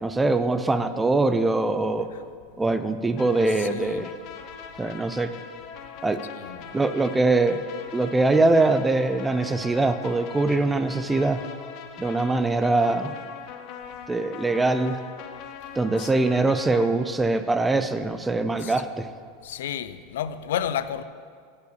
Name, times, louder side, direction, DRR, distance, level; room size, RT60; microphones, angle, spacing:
voice 1, 0.0-2.1 2.6-4.1 4.8-5.3 6.0-6.2 6.7-7.6 7.9-11.4 12.0-13.1 14.1-15.0 15.7-19.1, right 2 dB, 10° right, 11 dB, 0.4 m, -23 dB
sound 1, 3.2-16.9, left 7 dB, 45° left, 0.6 m, -42 dB
voice 2, 3.6-4.0 6.3-6.7 16.0-16.1 18.6-18.7 19.4-21.0, left 9 dB, 85° left, 14 dB, 0.4 m, -31 dB
7.9 x 5.6 x 6.7 m, 2.1 s
supercardioid pair, 145°, 0 cm